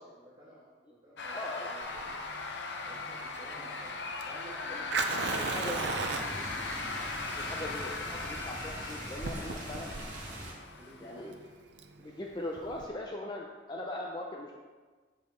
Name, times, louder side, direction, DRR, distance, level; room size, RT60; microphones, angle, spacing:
voice 1, 0.0-2.3 2.8-3.9 4.2-6.6 10.8-11.4 12.0-12.2, right 1 dB, 25° right, -9 dB, 1.6 m, -53 dB
sound 1, 1.2-11.3, left 3 dB, 70° left, 0.7 m, -39 dB
voice 2, 1.3-1.7 4.7-4.9 5.3-5.9 7.3-9.9 11.0-11.3 12.0-14.5, left 1 dB, 25° left, 0 dB, 0.5 m, -40 dB
Fire, 1.8-12.9, right 4 dB, 70° right, 0.6 m, -38 dB
sound 2, 5.2-10.5, right 1 dB, 45° right, 1.8 m, -43 dB
7.9 x 5.3 x 4.3 m, 1.4 s
head